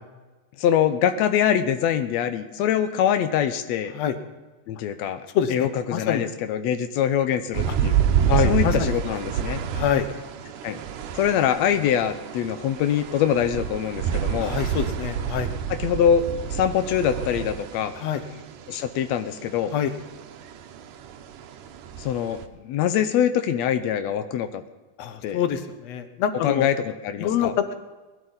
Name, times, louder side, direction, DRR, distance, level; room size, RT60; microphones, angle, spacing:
voice 1, 0.6-3.9 4.7-8.0 8.4-9.6 10.6-10.8 11.2-14.5 15.7-16.2 16.5-17.9 18.7-19.7 22.0-24.6 25.2-25.4 26.4-27.7, left 9 dB, 90° left, 9 dB, 1.5 m, -24 dB
voice 2, 5.3-6.3 8.3-8.9 9.7-10.1 14.4-15.5 17.9-18.2 19.7-19.9 25.0-26.7 27.2-27.7, left 9 dB, 65° left, 9 dB, 1.7 m, -25 dB
sound 1, 7.5-22.4, right 8 dB, 70° right, 2.3 m, -29 dB
19.5 x 12.5 x 4.0 m, 1.2 s
omnidirectional pair, 4.1 m